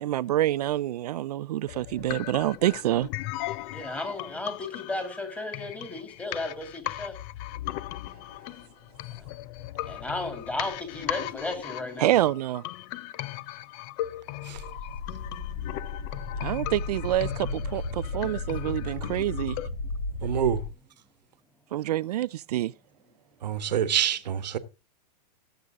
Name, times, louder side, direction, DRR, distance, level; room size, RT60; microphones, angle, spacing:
voice 1, 0.0-3.1 12.0-12.6 16.4-19.6 21.7-22.7, right 14 dB, 65° right, 0.5 m, -27 dB
sound 1, 1.7-19.7, left 15 dB, 35° left, 0.6 m, -38 dB
voice 2, 3.7-7.2 9.2-9.3 9.8-12.1, left 2 dB, 5° left, 2.7 m, -34 dB
sound 2, 14.5-20.7, left 2 dB, 75° left, 6.0 m, -34 dB
voice 3, 20.2-20.6 23.4-24.6, right 9 dB, 80° right, 1.4 m, -26 dB
17.5 x 8.1 x 3.7 m
hypercardioid pair, 145°, 21 cm